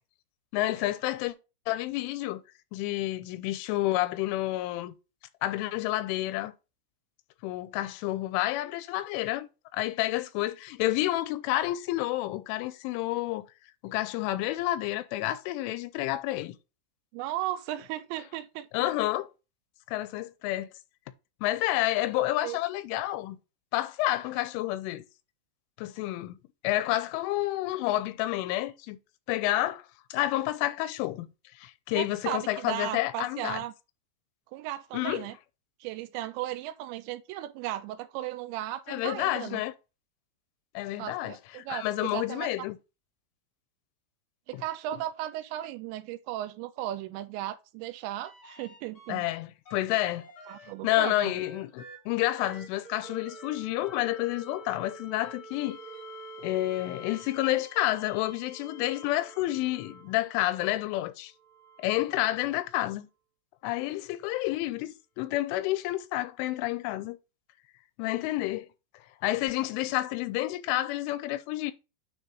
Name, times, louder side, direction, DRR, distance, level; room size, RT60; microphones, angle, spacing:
voice 1, 0.5-1.4 1.7-2.4 2.7-4.9 5.4-6.5 7.4-13.4 13.8-16.6 18.7-19.3 19.9-20.7 21.4-23.4 23.7-25.1 25.8-26.3 26.6-29.0 29.3-29.8 30.1-31.3 31.6-33.6 34.9-35.3 38.9-39.7 40.7-42.8 44.5-44.6 49.1-50.3 50.8-55.8 56.4-61.3 61.8-63.1 63.6-67.2 68.0-68.7 69.2-71.7, left 16 dB, 90° left, 3.2 m, -29 dB
voice 2, 17.1-18.7 22.4-22.6 31.9-33.7 34.5-35.3 35.8-39.6 41.0-42.7 44.5-49.2 50.5-51.4, right 13 dB, 85° right, 2.7 m, -36 dB
sound 1, 48.2-49.3 49.6-60.4 61.3-62.8 64.6-64.7, right 1 dB, 65° left, 1.3 m, -48 dB
9.3 x 3.4 x 3.9 m
omnidirectional pair, 5.4 m